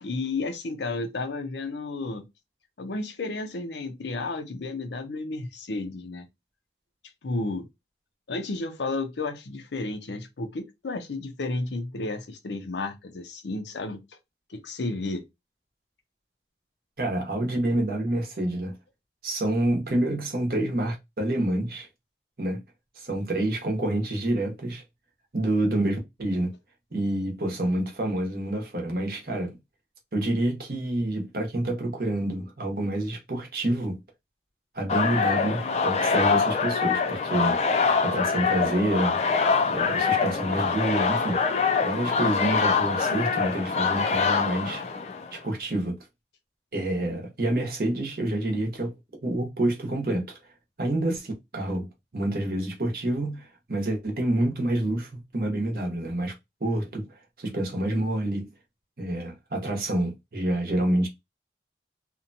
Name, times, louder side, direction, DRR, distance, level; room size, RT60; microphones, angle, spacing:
voice 1, 0.0-2.2 2.8-6.3 7.2-7.7 8.3-14.0 14.5-15.2, left 3 dB, 80° left, 0.6 m, -32 dB
voice 2, 17.0-18.7 19.2-21.9 22.4-22.6 23.0-24.8 25.3-26.5 26.9-29.6 30.1-34.0 34.7-37.6 38.0-39.2 39.7-41.4 41.8-44.8 45.3-46.0 46.7-48.9 49.2-50.4 50.8-56.3 56.6-57.1 57.4-58.5 59.0-61.1, right 1 dB, 55° right, 0.9 m, -28 dB
sound 1, 34.9-45.4, left 5 dB, 35° left, 0.3 m, -24 dB
2.7 x 2.2 x 2.6 m
head